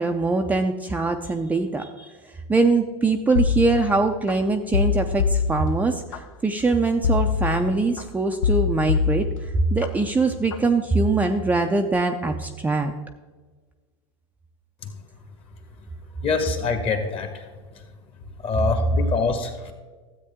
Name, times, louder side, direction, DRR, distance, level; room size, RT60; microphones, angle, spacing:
voice 1, 0.0-2.1 2.5-12.9, right 3 dB, 10° right, 4 dB, 0.5 m, -22 dB
sound 1, 3.4-4.3 4.7-6.2 7.0-8.0 8.4-9.9 10.3-10.7, left 6 dB, 80° left, 0.9 m, -24 dB
voice 2, 16.2-17.5 18.4-19.7, left 4 dB, 35° left, 6 dB, 1.7 m, -25 dB
13.0 x 8.2 x 3.6 m, 1.4 s
hypercardioid pair, 115°, 16 cm